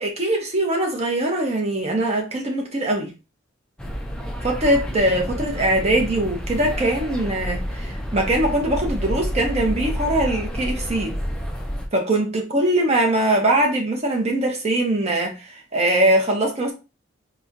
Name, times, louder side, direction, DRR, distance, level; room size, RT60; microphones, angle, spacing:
voice 1, 0.0-3.1 4.4-11.2 11.9-16.7, right 1 dB, 30° right, 0.9 m, -22 dB
sound 1, 3.8-11.9, equal, 5° left, 0.5 m, -29 dB
4.2 x 2.2 x 2.6 m
head